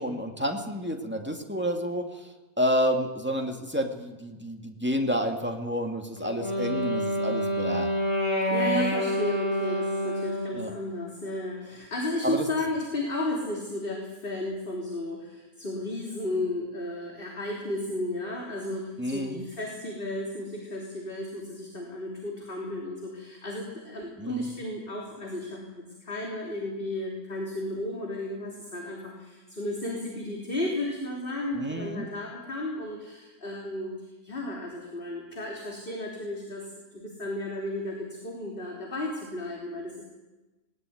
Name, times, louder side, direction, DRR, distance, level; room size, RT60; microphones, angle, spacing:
voice 1, 0.0-2.3 2.6-7.9 10.5-10.7 12.2-12.5 19.0-19.4 24.2-24.5 31.5-32.1, equal, 5° right, 2 dB, 2.2 m, -29 dB
Wind instrument woodwind instrument, 6.2-10.7, equal, 20° left, 4.0 m, -27 dB
voice 2, 8.5-33.9 34.2-36.7 36.9-40.0, left 1 dB, 35° left, -1 dB, 3.6 m, -33 dB
19.5 x 19.5 x 9.4 m, 1.1 s
omnidirectional pair, 1.6 m